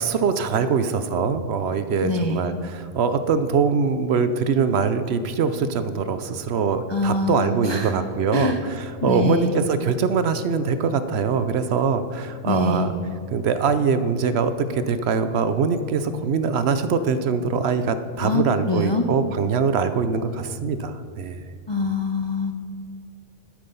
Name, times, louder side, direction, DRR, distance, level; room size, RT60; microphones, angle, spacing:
voice 1, 0.0-12.9 13.3-21.4, right 5 dB, 65° right, 11 dB, 0.8 m, -23 dB
voice 2, 2.0-2.4 6.9-7.9 8.3-8.6 9.0-9.5 12.5-12.9 18.2-19.1 21.7-22.5, left 3 dB, 40° left, 5 dB, 0.4 m, -24 dB
12.0 x 8.4 x 5.4 m, 2.1 s
omnidirectional pair, 1.3 m